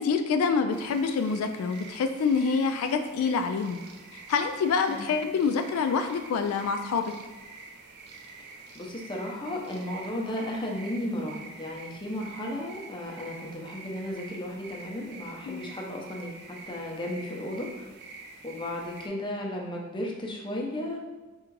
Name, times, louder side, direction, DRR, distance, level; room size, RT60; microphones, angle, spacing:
voice 1, 0.0-3.8 4.1-7.1 15.5-15.7, left 5 dB, 85° left, 7 dB, 0.3 m, -26 dB
sound 1, 0.7-19.1, right 3 dB, 50° right, 0.4 m, -47 dB
voice 2, 8.7-17.9 18.4-21.0, left 1 dB, 25° left, -1 dB, 0.6 m, -34 dB
3.6 x 2.4 x 4.5 m, 1.2 s
head